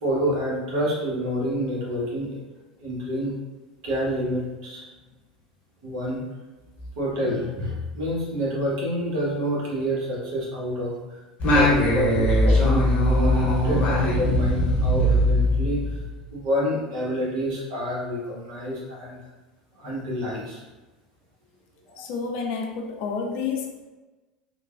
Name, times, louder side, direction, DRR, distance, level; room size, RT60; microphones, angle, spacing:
voice 1, 0.0-2.4 2.8-3.3 3.8-4.8 5.8-6.2 7.0-11.2 11.5-15.9 16.3-19.2 19.8-20.6 21.9-22.1, equal, 60° right, -5 dB, 1.0 m, -28 dB
Singing, 11.4-16.2, left 1 dB, 35° left, 0.9 m, -20 dB
voice 2, 22.0-23.9, left 5 dB, 55° left, 2 dB, 0.4 m, -30 dB
3.1 x 2.2 x 2.4 m, 1.2 s
figure-of-eight pair, 75°, 4 cm